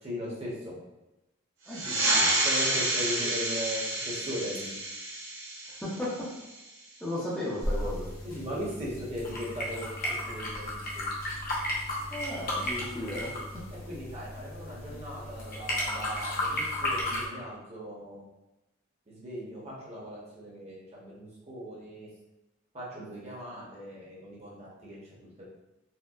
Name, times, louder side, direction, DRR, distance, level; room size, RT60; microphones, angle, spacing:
voice 1, 0.0-0.8 2.4-4.8 8.2-11.1 13.3-13.4 13.8-18.2 19.1-22.1 22.7-25.4, equal, 30° right, -6 dB, 0.9 m, -38 dB
voice 2, 1.7-2.4 5.8-6.3 7.0-8.1 12.1-13.6, left 1 dB, 5° left, -9 dB, 0.6 m, -35 dB
sound 1, 1.7-6.8, right 1 dB, 70° right, 0.9 m, -29 dB
sound 2, 7.6-17.3, left 1 dB, 45° left, 0.7 m, -34 dB
4.3 x 2.1 x 2.4 m, 0.98 s
head